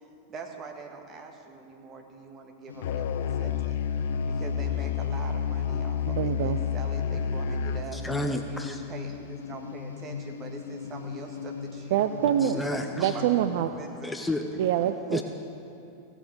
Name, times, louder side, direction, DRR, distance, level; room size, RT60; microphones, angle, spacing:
voice 1, 0.3-3.8 4.3-8.0 8.5-12.0 12.4-13.3 13.8-14.1, right 3 dB, 30° right, 3 dB, 1.7 m, -43 dB
sound 1, 2.7-13.6, left 7 dB, 70° left, 0.9 m, -39 dB
Musical instrument, 2.8-7.9, left 7 dB, 55° left, 0.5 m, -29 dB
voice 2, 6.1-6.6 11.9-12.6 13.0-13.7 14.6-15.2, right 11 dB, 50° right, 9 dB, 0.4 m, -25 dB
voice 3, 7.9-8.8 12.4-13.2 14.0-14.6 15.1-15.2, left 1 dB, 5° left, 5 dB, 0.7 m, -31 dB
16.0 x 7.4 x 6.6 m, 2.7 s
figure-of-eight pair, 90°, 0 cm